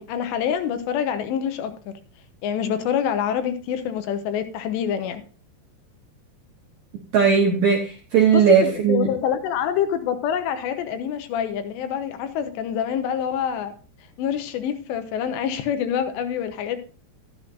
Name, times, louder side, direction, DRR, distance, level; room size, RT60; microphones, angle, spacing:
voice 1, 0.0-1.9 2.4-5.2 8.3-13.7 14.2-16.8, left 8 dB, 90° left, 9 dB, 3.2 m, -26 dB
voice 2, 7.1-9.1, right 7 dB, 70° right, 0 dB, 1.7 m, -18 dB
12.5 x 10.5 x 2.6 m, 0.37 s
omnidirectional pair, 4.9 m